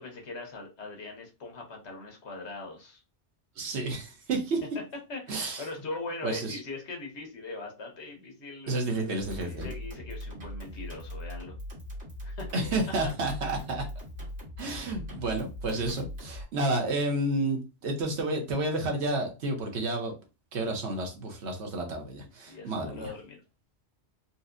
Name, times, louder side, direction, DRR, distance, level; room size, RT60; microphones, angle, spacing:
voice 1, 0.0-3.0 5.1-8.8 9.4-11.5 12.2-12.5 13.0-13.1 22.5-23.4, left 3 dB, 70° left, 1.3 m, -41 dB
voice 2, 3.6-4.6 5.3-5.6 6.2-6.6 8.7-9.7 12.5-13.8 14.6-20.1 20.5-23.1, right 2 dB, 70° right, 1.1 m, -30 dB
sound 1, 9.2-16.4, left 1 dB, 85° right, 1.8 m, -40 dB
4.1 x 2.1 x 2.4 m
omnidirectional pair, 1.2 m